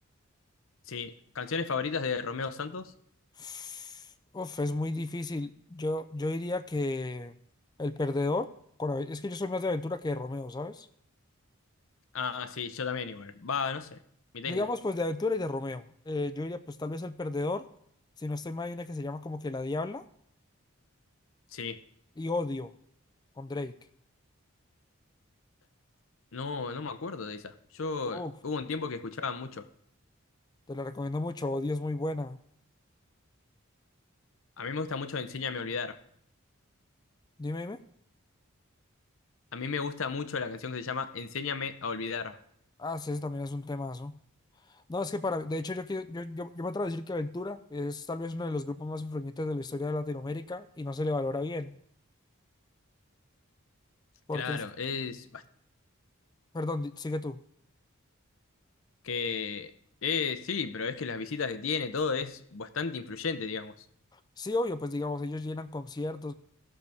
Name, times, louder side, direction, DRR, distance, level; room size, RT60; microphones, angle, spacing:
voice 1, 0.9-2.9 12.1-14.0 14.3-14.7 21.5-21.8 26.3-29.7 34.6-36.0 39.5-42.4 54.3-55.4 59.0-59.7 60.0-63.7, left 5 dB, 70° left, 0.7 m, -34 dB
voice 2, 3.4-7.3 7.8-8.5 8.8-10.9 14.5-17.7 18.2-20.0 22.2-22.7 23.4-23.8 28.1-28.3 30.7-32.4 37.4-37.8 42.8-44.2 44.7-51.7 54.3-54.6 56.5-57.4 64.1-66.3, left 2 dB, 20° left, 0.3 m, -33 dB
16.0 x 6.7 x 3.4 m
head